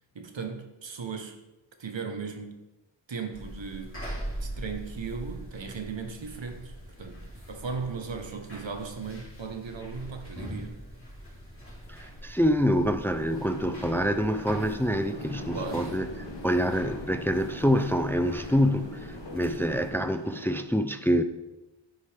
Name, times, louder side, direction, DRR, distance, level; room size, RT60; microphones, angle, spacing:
voice 1, 0.1-1.4 1.8-2.6 3.1-4.1 4.4-10.8 15.5-16.1, right 5 dB, 75° right, 1.2 m, -37 dB
sound 1, 3.3-19.9, equal, 30° left, 3.4 m, -42 dB
voice 2, 11.9-16.1 16.4-21.2, equal, 5° left, 0.5 m, -26 dB
sound 2, 13.0-20.6, left 1 dB, 70° left, 1.7 m, -41 dB
10.0 x 9.3 x 3.5 m
wide cardioid pair, 70°, 45 cm